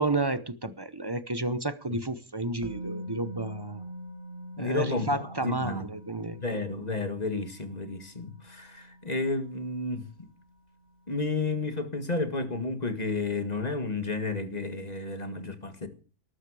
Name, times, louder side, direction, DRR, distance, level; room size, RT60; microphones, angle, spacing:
voice 1, 0.0-3.8 4.6-6.4, right 2 dB, 20° right, 0.7 m, -31 dB
Musical instrument, 2.6-10.5 10.8-11.0, equal, 75° right, 3.4 m, -44 dB
voice 2, 4.6-5.1 5.4-5.9 6.3-10.3 11.1-15.9, left 3 dB, 25° left, 1.8 m, -31 dB
19.0 x 13.0 x 4.9 m
omnidirectional pair, 1.6 m